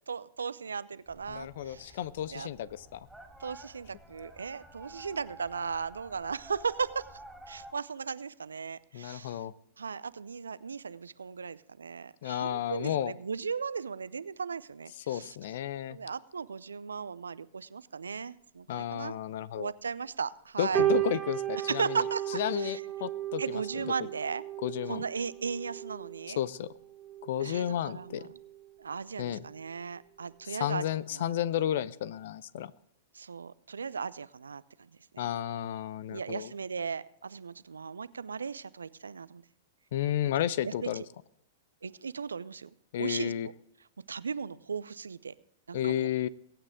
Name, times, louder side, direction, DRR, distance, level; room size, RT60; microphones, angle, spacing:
voice 1, 0.1-2.0 2.3-2.5 3.4-7.0 7.5-9.4 9.8-15.4 15.9-19.1 19.6-20.8 21.7-22.8 23.4-24.4 24.9-26.4 27.4-28.3 28.8-30.9 31.1-31.3 33.1-35.3 36.1-39.4 40.2-40.3 40.6-40.9 41.8-42.7 43.0-43.5 44.1-45.3 45.7-46.1, right 5 dB, 80° right, 18 dB, 0.6 m, -37 dB
sound 1, 1.1-7.7, right 1 dB, 5° right, 3.2 m, -52 dB
voice 2, 1.3-3.1 8.9-9.5 12.2-13.1 15.0-16.0 18.7-19.7 20.6-22.0 22.3-23.9 24.6-25.0 26.4-26.7 27.2-28.2 29.2-29.4 30.5-32.7 35.2-36.5 39.9-41.0 42.9-43.5 45.7-46.3, left 11 dB, 60° left, 19 dB, 0.7 m, -32 dB
sound 2, 20.7-28.7 29.3-29.6, right 12 dB, 20° right, 1.9 m, -35 dB
22.5 x 8.9 x 3.7 m, 0.74 s
figure-of-eight pair, 100°, 0 cm